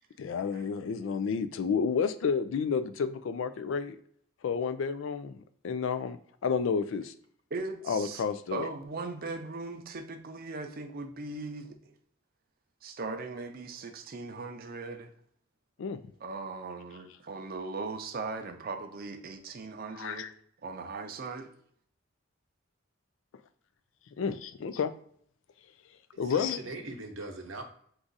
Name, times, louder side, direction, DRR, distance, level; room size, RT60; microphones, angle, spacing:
voice 1, 0.2-4.0 4.4-7.1 7.9-8.7 15.8-16.0 19.9-20.3 24.2-24.9 26.2-26.6, left 6 dB, 70° left, 11 dB, 0.3 m, -31 dB
voice 2, 7.5-8.2 8.5-11.9 12.8-15.1 16.2-20.3 20.6-21.5, right 3 dB, 45° right, 5 dB, 0.5 m, -39 dB
voice 3, 26.1-27.6, right 2 dB, 75° right, 3 dB, 0.8 m, -40 dB
4.7 x 2.4 x 4.0 m, 0.62 s
head